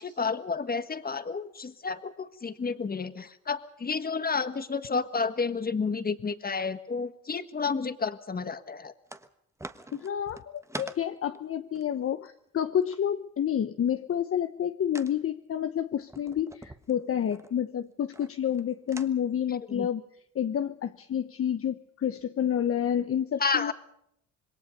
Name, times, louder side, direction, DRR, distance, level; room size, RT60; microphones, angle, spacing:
voice 1, 0.0-8.9 19.7-19.9 23.4-23.7, left 5 dB, 30° left, 10 dB, 1.6 m, -31 dB
sound 1, 9.1-9.3 9.6-13.0 14.9-15.1 16.1-17.5 18.1-18.6 18.9-19.1, right 2 dB, 10° right, 1.3 m, -43 dB
voice 2, 9.9-20.0 20.3-23.7, left 9 dB, 45° left, 9 dB, 0.9 m, -29 dB
26.5 x 21.5 x 5.4 m, 0.73 s
cardioid pair, 90°, 30 cm